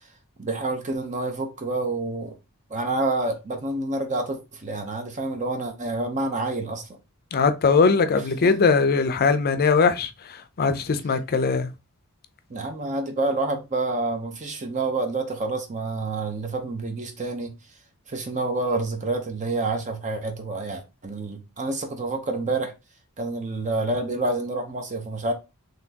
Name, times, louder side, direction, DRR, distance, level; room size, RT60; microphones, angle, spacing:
voice 1, 0.4-2.3 2.7-6.9 8.4-8.5 12.5-17.5 18.1-22.7 23.2-25.3, right 2 dB, 35° right, 0.7 m, -28 dB
voice 2, 7.3-11.7, left 4 dB, 45° left, 0.5 m, -21 dB
4.2 x 3.2 x 2.8 m
head